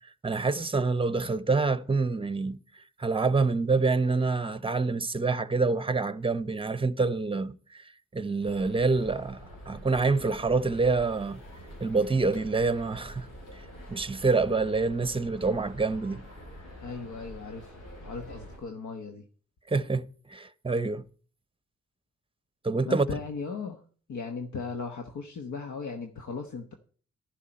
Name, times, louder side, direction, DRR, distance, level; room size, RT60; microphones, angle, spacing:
voice 1, 0.2-2.6 3.0-7.8 8.1-9.4 9.7-11.4 11.8-13.3 13.9-16.2 19.7-21.0 22.6-23.1, right 3 dB, 15° right, 0.7 m, -26 dB
sound 1, 8.4-18.6, equal, 85° left, 4.7 m, -46 dB
voice 2, 16.8-17.7 18.0-19.2 22.8-23.8 24.1-26.7, left 4 dB, 70° left, 1.2 m, -37 dB
11.0 x 11.0 x 4.4 m
cardioid pair, 55°, 31 cm